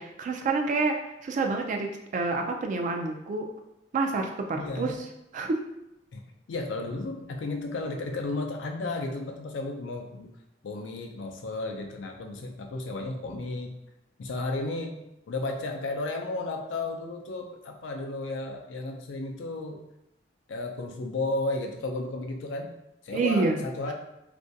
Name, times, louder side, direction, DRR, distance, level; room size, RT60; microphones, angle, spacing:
voice 1, 0.0-3.5 3.9-5.0 5.3-5.7 23.1-23.6, right 3 dB, 45° right, 4 dB, 0.3 m, -28 dB
voice 2, 4.5-4.9 6.1-6.2 6.5-10.3 10.6-13.7 14.2-15.0 15.3-19.8 20.5-22.7 23.0-23.9, left 2 dB, 85° left, 3 dB, 0.4 m, -33 dB
2.5 x 2.2 x 2.6 m, 0.85 s
head